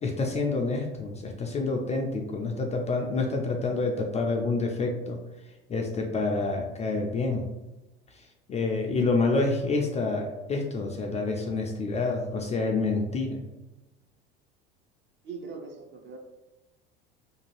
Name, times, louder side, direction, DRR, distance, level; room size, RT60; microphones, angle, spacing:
voice 1, 0.0-5.2 5.7-7.4 8.1-13.4, left 3 dB, 25° left, 1 dB, 0.3 m, -28 dB
voice 2, 15.2-16.2, right 4 dB, 40° right, 3 dB, 0.5 m, -40 dB
2.6 x 2.3 x 3.1 m, 1.0 s
hypercardioid pair, 80°, 30 cm